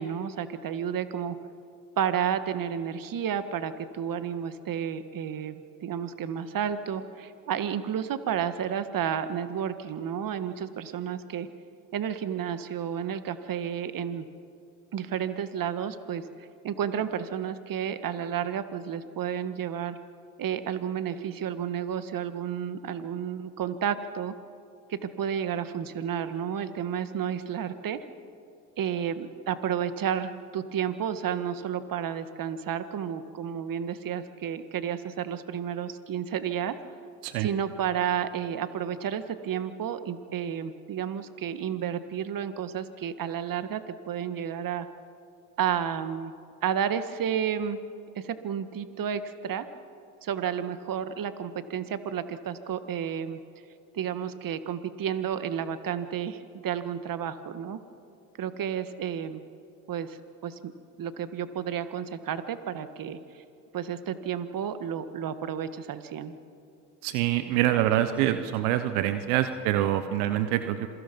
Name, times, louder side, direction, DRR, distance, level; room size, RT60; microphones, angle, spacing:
voice 1, 0.0-1.3 2.0-5.5 5.8-11.5 11.9-14.2 14.9-16.3 16.6-20.0 20.4-24.3 24.9-28.0 28.8-36.7 37.4-44.9 45.6-46.3 46.6-47.8 48.1-49.7 50.2-53.4 53.9-57.8 58.4-59.4 59.9-60.7 61.0-63.4 63.7-66.3, right 8 dB, 45° right, 11 dB, 1.7 m, -31 dB
voice 2, 67.0-70.9, right 13 dB, 75° right, 10 dB, 1.2 m, -25 dB
27.0 x 22.5 x 5.4 m, 2.5 s
hypercardioid pair, 65°, 46 cm